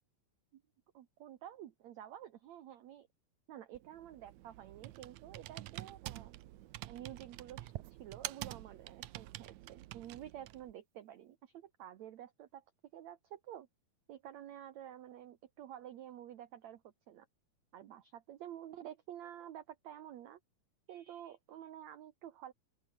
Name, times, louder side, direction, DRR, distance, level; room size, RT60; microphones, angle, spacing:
voice 1, 0.9-3.1 3.5-6.3 6.9-7.7 8.0-12.6 12.9-13.7 14.1-16.8 17.1-17.3 17.7-20.4 20.9-22.5, right 11 dB, 60° right, 2.0 m, -50 dB
Computer keyboard, 3.7-10.7, right 16 dB, 90° right, 1.6 m, -47 dB
open air
omnidirectional pair, 4.4 m